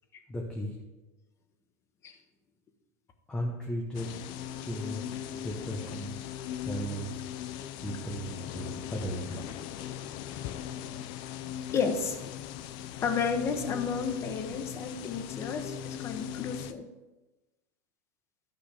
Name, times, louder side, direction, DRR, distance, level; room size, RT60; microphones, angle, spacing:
voice 1, 0.3-0.7 3.3-4.2 4.6-6.2 6.6-7.3 7.8-9.4, equal, 10° left, -2 dB, 1.1 m, -36 dB
sound 1, 3.9-16.7, left 10 dB, 55° left, 0.6 m, -39 dB
voice 2, 11.7-12.2 13.0-16.9, left 5 dB, 30° left, 7 dB, 1.1 m, -32 dB
12.0 x 5.9 x 5.0 m, 1.1 s
supercardioid pair, 145°, 10 cm